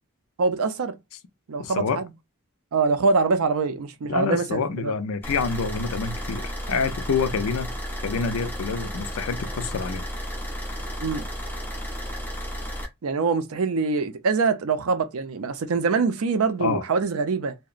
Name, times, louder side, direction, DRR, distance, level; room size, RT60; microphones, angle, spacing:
voice 1, 0.4-0.9 1.5-2.1 2.7-4.9 11.0-11.2 13.0-17.5, right 4 dB, 85° right, 0.5 m, -24 dB
voice 2, 1.6-2.0 4.1-7.7 8.0-10.0 16.6-16.8, left 5 dB, 80° left, 0.4 m, -27 dB
sound 1, 5.2-12.8, equal, 10° left, 0.6 m, -33 dB
2.8 x 2.1 x 2.4 m
head